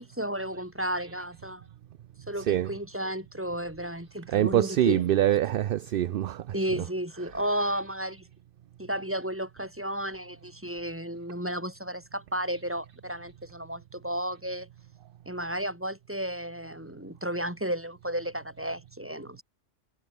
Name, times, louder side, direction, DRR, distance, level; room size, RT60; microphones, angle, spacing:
voice 1, 0.0-1.7 2.3-5.1 6.5-8.3 8.8-14.7 15.3-19.4, right 1 dB, 10° right, 4.3 m, -33 dB
voice 2, 2.4-2.7 4.3-6.8 7.4-7.6, right 12 dB, 60° right, 0.6 m, -25 dB
omnidirectional pair, 1.3 m